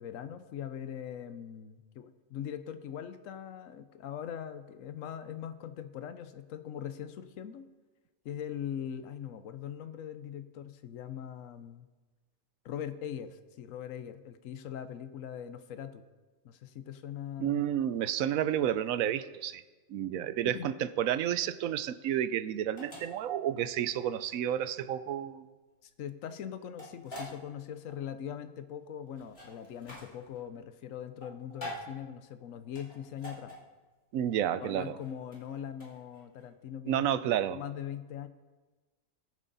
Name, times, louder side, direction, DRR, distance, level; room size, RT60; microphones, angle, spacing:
voice 1, 0.0-7.7 8.2-11.9 12.6-16.0 16.4-17.6 20.4-20.7 25.8-33.5 34.3-37.1 37.5-38.3, left 9 dB, 75° left, 11 dB, 1.1 m, -41 dB
voice 2, 17.4-19.6 19.9-25.5 34.1-34.9 36.9-37.6, right 10 dB, 90° right, 14 dB, 1.0 m, -31 dB
sound 1, 21.1-36.5, left 1 dB, 50° left, 3.2 m, -48 dB
20.5 x 7.5 x 4.0 m, 1.2 s
omnidirectional pair, 1.4 m